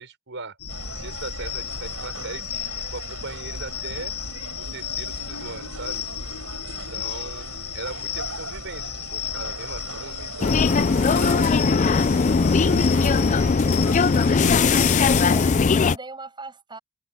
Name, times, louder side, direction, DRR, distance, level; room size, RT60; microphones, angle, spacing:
voice 1, 0.0-4.1 4.6-6.0 6.6-10.8 11.1-14.7, right 3 dB, 60° right, 5.7 m, -40 dB
sound 1, 0.6-15.6, left 8 dB, 85° left, 1.8 m, -34 dB
sound 2, 0.7-14.6, right 4 dB, 75° right, 5.1 m, -39 dB
sound 3, 10.4-16.0, left 4 dB, 35° left, 0.4 m, -19 dB
voice 2, 15.3-16.8, right 3 dB, 20° right, 7.0 m, -40 dB
head